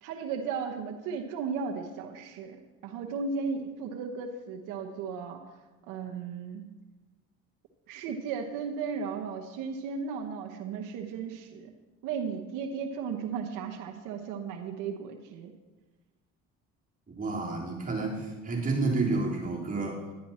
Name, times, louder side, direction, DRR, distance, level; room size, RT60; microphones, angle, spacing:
voice 1, 0.0-5.6 5.9-6.6 7.9-11.7 12.0-15.5, right 5 dB, 85° right, 4 dB, 1.1 m, -35 dB
voice 2, 17.2-20.0, right 3 dB, 25° right, -4 dB, 3.5 m, -30 dB
11.0 x 9.8 x 4.3 m, 1.2 s
cardioid pair, 85°, 31 cm